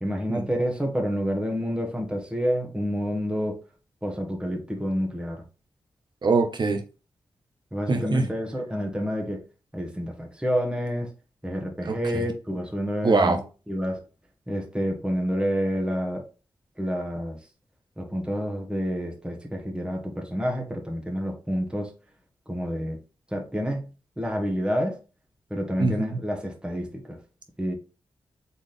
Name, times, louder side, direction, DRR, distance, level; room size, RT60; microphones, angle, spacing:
voice 1, 0.0-3.6 4.0-5.4 7.7-9.4 9.7-11.1 11.4-13.3 13.7-14.0 14.5-16.2 16.8-17.4 18.0-21.9 22.5-23.0 23.3-23.9 24.2-25.0 25.5-27.2 27.6-27.7, equal, 10° right, 1.4 m, -28 dB
voice 2, 6.2-6.8 7.9-8.3 11.8-12.2 13.0-13.4 25.8-26.2, right 3 dB, 55° right, 1.2 m, -23 dB
4.3 x 3.6 x 3.4 m
cardioid pair, 55°, 9 cm